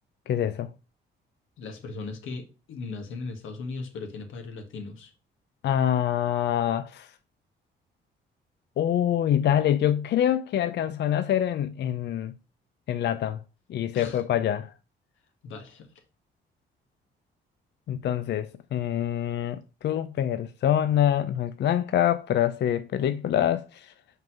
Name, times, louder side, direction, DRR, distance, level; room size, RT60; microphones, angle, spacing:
voice 1, 0.3-0.7 5.6-7.1 8.8-12.3 12.9-13.4 13.7-14.7 17.9-23.9, left 10 dB, 60° left, 0.5 m, -25 dB
voice 2, 1.6-5.1 13.9-14.2 15.4-15.9, left 3 dB, 80° left, 1.5 m, -38 dB
5.4 x 3.9 x 6.0 m
cardioid pair, 90°, 20 cm